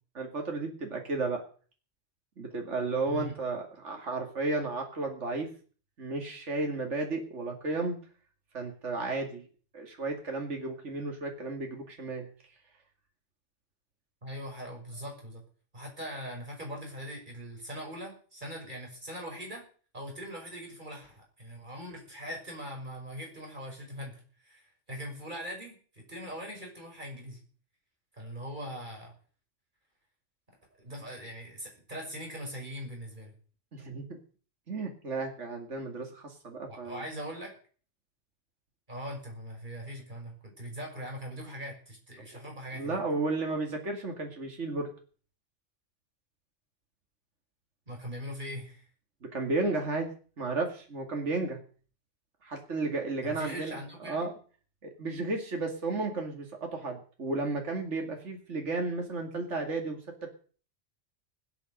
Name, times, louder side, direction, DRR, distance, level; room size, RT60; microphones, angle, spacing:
voice 1, 0.1-1.4 2.4-5.5 6.0-8.0 8.5-9.4 9.7-12.3 33.7-34.2 34.7-37.0 42.7-44.9 49.3-50.1 50.4-51.6 52.4-53.8 54.0-54.3 54.8-60.3, right 3 dB, 70° right, 2 dB, 2.7 m, -33 dB
voice 2, 14.2-15.4 15.7-19.6 19.9-27.4 28.2-29.1 30.8-33.3 36.7-37.6 38.9-43.0 47.9-48.9 53.2-54.3, equal, 40° right, 0 dB, 6.1 m, -41 dB
19.5 x 9.1 x 6.5 m, 0.42 s
omnidirectional pair, 1.3 m